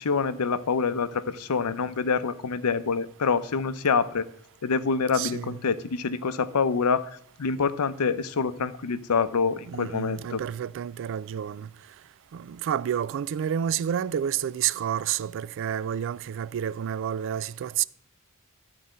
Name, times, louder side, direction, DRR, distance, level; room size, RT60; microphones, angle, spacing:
voice 1, 0.0-4.3 4.6-7.0 7.4-10.4, left 5 dB, 85° left, 0.6 m, -26 dB
voice 2, 5.1-5.6 9.7-11.7 12.3-17.8, right 9 dB, 60° right, 0.3 m, -29 dB
12.0 x 4.2 x 7.5 m
head